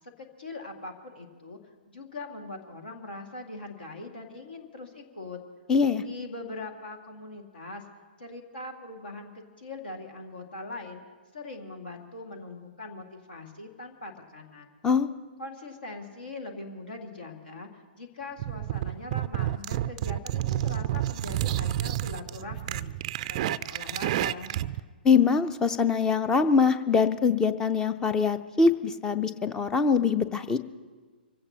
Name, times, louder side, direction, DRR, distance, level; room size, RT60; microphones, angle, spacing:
voice 1, 0.2-1.6 1.9-5.4 6.0-7.8 8.2-11.0 11.3-14.7 15.4-17.7 18.0-22.9 23.3-24.5, left 2 dB, 70° left, 3 dB, 2.0 m, -41 dB
voice 2, 5.7-6.0 14.8-15.1 25.0-30.6, left 5 dB, 10° left, 12 dB, 0.5 m, -23 dB
sound 1, 18.4-24.8, right 13 dB, 35° right, 0.4 m, -30 dB
25.0 x 16.5 x 2.9 m, 1.4 s
figure-of-eight pair, 120°, 5 cm